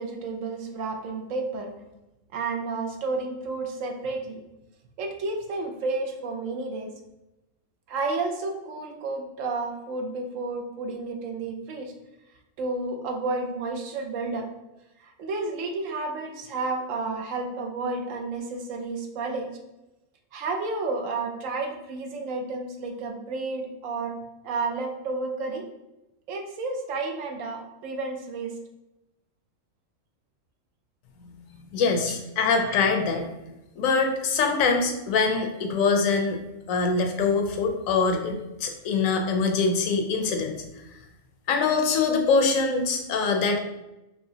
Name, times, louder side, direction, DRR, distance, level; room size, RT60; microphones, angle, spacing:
voice 1, 0.0-1.7 2.3-4.4 5.0-6.9 7.9-11.9 12.6-14.5 15.0-19.5 20.3-24.2 24.4-25.6 26.3-28.6 32.0-32.2 32.7-32.8, right 3 dB, 75° right, 3 dB, 1.0 m, -31 dB
voice 2, 31.7-33.3 33.8-36.4 36.7-40.6 41.5-43.6, left 4 dB, 90° left, 4 dB, 1.0 m, -24 dB
4.7 x 3.0 x 2.7 m, 0.95 s
omnidirectional pair, 1.4 m